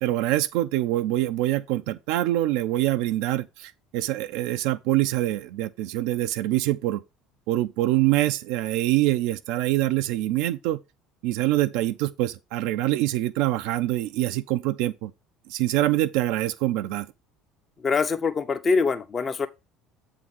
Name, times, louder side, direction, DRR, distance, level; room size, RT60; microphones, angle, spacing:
voice 1, 0.0-7.0 7.5-10.8 11.2-15.1 15.5-17.1, right 15 dB, 65° right, 0.4 m, -25 dB
voice 2, 17.8-19.5, left 4 dB, 35° left, 0.8 m, -24 dB
7.6 x 3.7 x 5.4 m
figure-of-eight pair, 65°, 0 cm